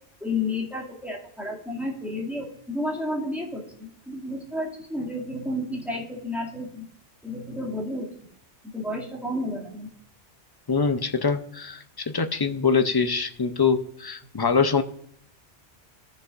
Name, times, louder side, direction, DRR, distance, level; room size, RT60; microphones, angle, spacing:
voice 1, 0.2-6.8 7.2-8.1 8.7-9.9, left 1 dB, ahead, -2 dB, 2.1 m, -31 dB
voice 2, 10.7-14.8, left 5 dB, 30° left, 8 dB, 0.4 m, -24 dB
15.0 x 6.7 x 2.5 m, 0.69 s
omnidirectional pair, 1.2 m